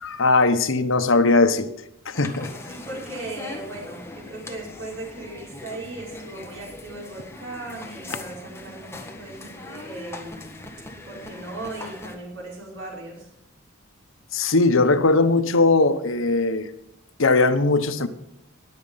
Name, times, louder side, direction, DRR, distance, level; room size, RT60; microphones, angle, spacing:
voice 1, 0.0-1.7 2.1-2.5 14.3-16.7 17.2-18.1, left 3 dB, 75° left, 1.1 m, -19 dB
sound 1, 2.1-12.2, left 2 dB, 15° left, 1.7 m, -40 dB
voice 2, 2.6-10.5 11.1-13.3, right 2 dB, 70° right, 5.6 m, -37 dB
20.5 x 7.7 x 5.6 m
head